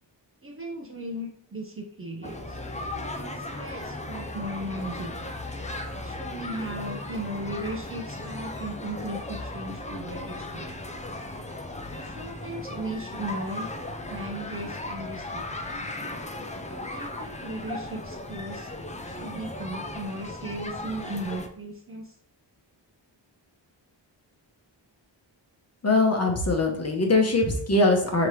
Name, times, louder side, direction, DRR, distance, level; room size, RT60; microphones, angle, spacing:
voice 1, 0.4-2.6 3.2-5.3 6.0-10.8 11.9-13.7 14.1-15.7 16.6-18.7 19.1-22.1, right 1 dB, 30° right, 2 dB, 0.6 m, -36 dB
sound 1, 2.2-21.5, left 2 dB, 15° left, 0.4 m, -36 dB
voice 2, 25.8-28.3, left 2 dB, 35° left, 2 dB, 0.9 m, -22 dB
5.3 x 2.9 x 3.1 m, 0.63 s
wide cardioid pair, 90°, 45 cm